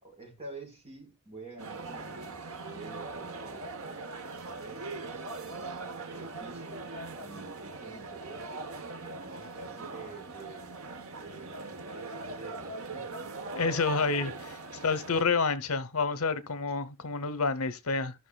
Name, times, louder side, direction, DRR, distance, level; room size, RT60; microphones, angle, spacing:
voice 1, 0.0-4.9 5.4-6.9 7.2-8.7 9.0-10.7 11.2-13.2, right 3 dB, 25° right, 4.2 m, -48 dB
sound 1, 1.6-15.2, right 3 dB, 70° right, 1.1 m, -41 dB
voice 2, 13.5-14.6 14.8-18.1, left 4 dB, 80° left, 0.9 m, -29 dB
16.0 x 5.8 x 2.3 m
head